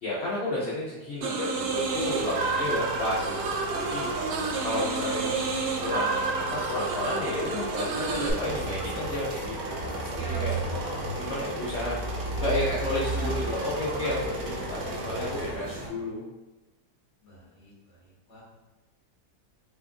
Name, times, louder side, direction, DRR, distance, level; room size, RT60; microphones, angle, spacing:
voice 1, 0.0-4.1 4.6-10.6 11.1-16.2, left 1 dB, 55° left, -7 dB, 0.7 m, -32 dB
sound 1, 1.2-8.3, right 4 dB, 90° right, 1.2 m, -30 dB
sound 2, 1.5-15.5, right 2 dB, 70° right, 1.1 m, -37 dB
voice 2, 2.3-2.7 17.2-18.4, left 1 dB, 25° left, -6 dB, 0.9 m, -54 dB
sound 3, 8.0-15.9, right 2 dB, 50° right, 0.4 m, -34 dB
2.9 x 2.5 x 3.6 m, 1.1 s
omnidirectional pair, 1.8 m